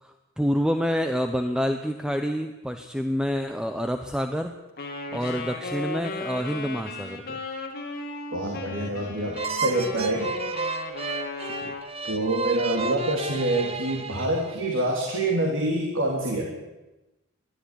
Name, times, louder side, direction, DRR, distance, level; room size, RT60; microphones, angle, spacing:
voice 1, 0.0-4.5 5.1-7.4 11.4-11.7, equal, 5° right, 6 dB, 0.9 m, -28 dB
Wind instrument woodwind instrument, 4.8-11.9, left 2 dB, 45° left, 3.1 m, -36 dB
voice 2, 8.3-10.3 12.0-16.5, right 1 dB, 70° right, 0 dB, 3.3 m, -26 dB
sound 1, 9.3-14.8, right 4 dB, 30° right, 1.2 m, -32 dB
21.0 x 13.0 x 10.0 m, 1.0 s
head